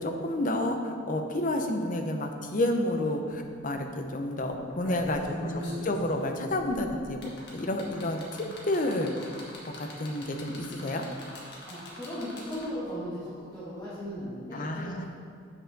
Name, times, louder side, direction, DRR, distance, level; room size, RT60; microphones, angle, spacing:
voice 1, 0.0-5.5 5.8-9.1 9.8-11.1 14.5-15.1, left 1 dB, 45° left, 4 dB, 0.7 m, -30 dB
sound 1, 4.7-12.9 14.1-14.2, left 1 dB, 60° left, 1.6 m, -44 dB
voice 2, 5.3-5.9 7.9-8.0 11.6-15.1, equal, 20° left, -10 dB, 1.5 m, -37 dB
8.9 x 6.5 x 4.0 m, 2.2 s
head